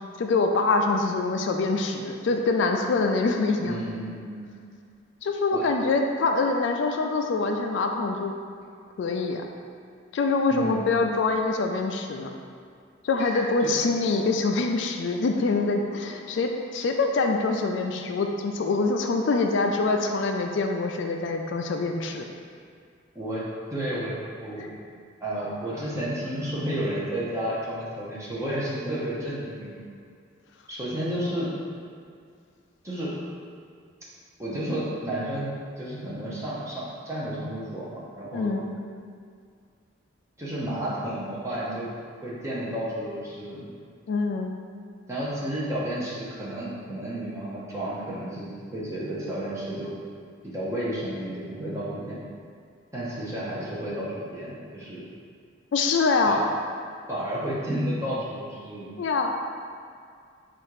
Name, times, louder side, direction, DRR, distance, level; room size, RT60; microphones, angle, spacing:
voice 1, 0.2-3.8 5.2-8.3 9.0-9.4 10.1-12.3 13.0-22.3 38.3-38.8 44.1-44.5 55.7-56.4 59.0-59.3, left 3 dB, 65° left, 3 dB, 0.3 m, -25 dB
voice 2, 3.6-4.6 5.5-5.6 10.5-10.9 13.2-13.9 23.1-23.5 23.7-24.7 25.2-29.8 30.7-31.5 32.8-33.1 34.4-38.5 40.4-41.9 42.2-43.7 45.1-49.9 50.4-52.2 52.9-55.0 56.3-56.4 57.1-58.9, right 1 dB, 15° right, -8 dB, 0.8 m, -32 dB
4.2 x 2.5 x 4.7 m, 2.2 s
head